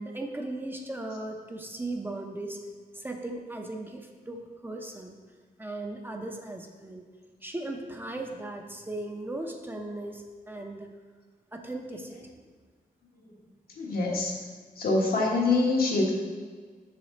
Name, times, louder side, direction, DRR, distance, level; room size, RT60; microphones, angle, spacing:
voice 1, 0.0-2.6 2.9-5.2 5.6-7.0 7.4-10.9 11.5-12.2, right 2 dB, 15° right, 2 dB, 0.5 m, -37 dB
voice 2, 13.7-14.4 14.7-16.1, left 3 dB, 80° left, -3 dB, 1.3 m, -25 dB
5.8 x 4.9 x 4.0 m, 1.5 s
wide cardioid pair, 140°, 15 cm